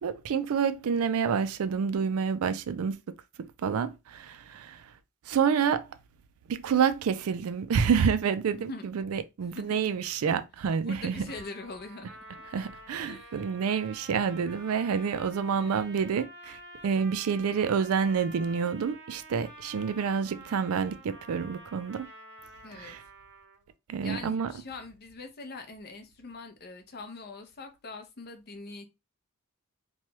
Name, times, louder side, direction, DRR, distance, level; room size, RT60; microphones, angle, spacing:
voice 1, 0.0-3.0 3.4-4.8 5.3-5.8 6.5-11.3 12.5-22.1 22.8-23.0 23.9-24.5, right 6 dB, 70° right, 0.4 m, -28 dB
voice 2, 10.8-12.6 13.0-13.4 15.6-15.9 22.6-23.0 24.0-28.9, left 3 dB, 45° left, 0.6 m, -43 dB
Trumpet, 11.3-23.7, right 2 dB, 50° right, 0.7 m, -49 dB
3.0 x 2.3 x 3.0 m
head